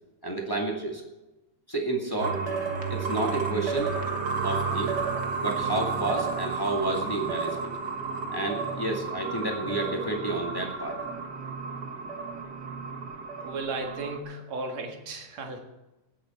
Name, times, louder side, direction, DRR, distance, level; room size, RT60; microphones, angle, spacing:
voice 1, 0.2-1.0 1.7-2.4 2.9-4.0 4.4-5.0 5.4-7.7 8.3-11.0, right 2 dB, 10° left, 0 dB, 1.5 m, -30 dB
sound 1, 2.2-14.2, right 5 dB, 50° right, 1.5 m, -32 dB
voice 2, 13.4-15.6, right 3 dB, 65° right, 3 dB, 3.0 m, -35 dB
18.0 x 8.8 x 4.4 m, 1.0 s
omnidirectional pair, 3.3 m